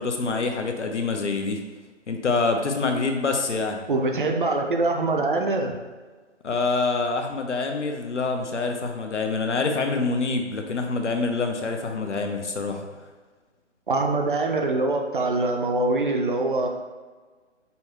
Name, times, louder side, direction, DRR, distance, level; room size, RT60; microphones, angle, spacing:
voice 1, 0.0-1.6 2.1-3.8 6.4-12.8, left 3 dB, 70° left, 4 dB, 0.7 m, -26 dB
voice 2, 3.9-5.7 13.9-16.7, right 2 dB, 45° right, 2 dB, 0.5 m, -24 dB
5.5 x 2.2 x 4.2 m, 1.3 s
figure-of-eight pair, 140°, 37 cm